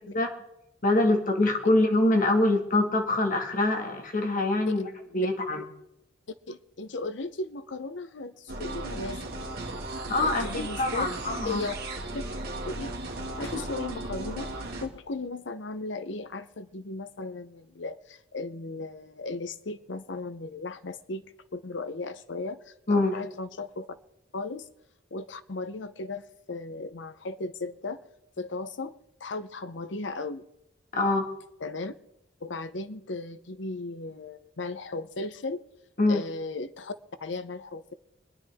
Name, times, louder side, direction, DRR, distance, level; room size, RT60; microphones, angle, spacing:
voice 1, 0.8-4.9 5.1-5.6 10.1-10.4 10.8-11.7 22.9-23.1 30.9-31.3 36.0-36.2, left 2 dB, 45° left, 3 dB, 1.9 m, -24 dB
voice 2, 6.5-11.1 11.4-11.7 12.1-12.2 12.6-14.5 14.8-21.2 21.5-24.0 24.3-24.7 25.1-28.0 28.4-28.9 29.2-30.4 31.6-31.9 32.4-35.6 36.1-36.9 37.2-37.9, left 3 dB, 75° left, 12 dB, 0.8 m, -36 dB
sound 1, 8.5-14.9, right 2 dB, 60° right, 2.2 m, -36 dB
25.0 x 10.5 x 3.6 m, 0.88 s
head